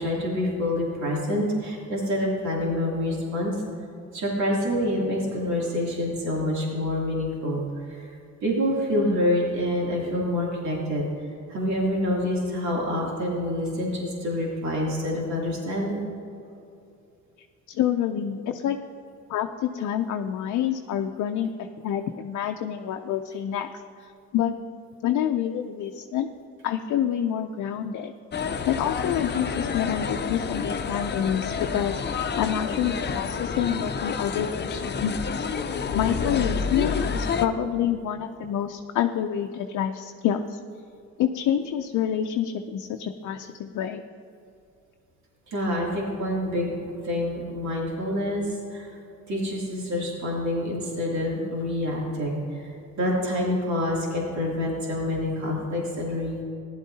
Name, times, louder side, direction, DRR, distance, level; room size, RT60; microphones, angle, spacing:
voice 1, 0.0-3.5 4.1-7.6 7.9-8.0 8.4-11.1 11.5-16.0 18.5-18.6 20.9-21.1 27.7-27.8 45.5-46.7 47.0-48.4 48.7-48.9 49.3-52.4 53.0-56.4, left 1 dB, 65° right, -4 dB, 2.9 m, -27 dB
voice 2, 17.7-18.8 19.3-23.7 24.0-24.6 25.0-26.3 26.6-28.1 28.4-40.6 41.2-44.0, left 9 dB, 70° left, 4 dB, 0.5 m, -27 dB
sound 1, 28.3-37.5, left 5 dB, 35° left, 0.7 m, -29 dB
15.5 x 11.0 x 2.8 m, 2.6 s
cardioid pair, 90°, 30 cm